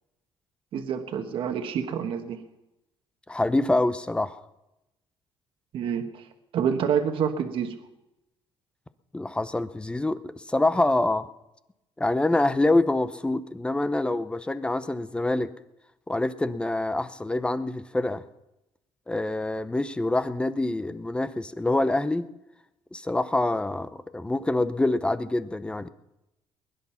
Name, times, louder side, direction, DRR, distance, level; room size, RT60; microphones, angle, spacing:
voice 1, 0.7-2.4 5.7-6.2 6.5-7.7, right 7 dB, 65° right, 5 dB, 1.3 m, -27 dB
voice 2, 3.3-4.4 9.1-11.3 12.0-15.5 16.1-18.2 19.1-22.3 22.9-25.9, left 2 dB, 10° left, 13 dB, 0.7 m, -26 dB
20.5 x 11.0 x 5.7 m, 0.92 s
cardioid pair, 120°, 10 cm